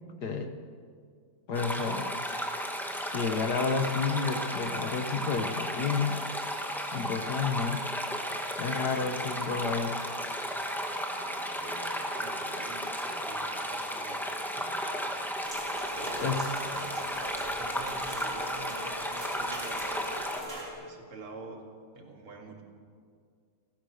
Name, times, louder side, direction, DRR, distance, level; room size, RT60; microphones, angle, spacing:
voice 1, 1.5-2.1 3.1-6.1 6.9-7.8 8.6-9.9 16.2-16.4, left 5 dB, 55° left, 7 dB, 1.6 m, -30 dB
sound 1, 1.5-20.4, equal, ahead, 1.8 m, -34 dB
voice 2, 11.1-14.2 14.6-15.1 15.9-20.5 20.8-21.6 21.9-22.6, right 3 dB, 80° right, 2 dB, 3.2 m, -45 dB
sound 2, 15.4-20.7, equal, 35° right, 4.6 m, -42 dB
30.0 x 14.5 x 6.5 m, 2.1 s
omnidirectional pair, 2.3 m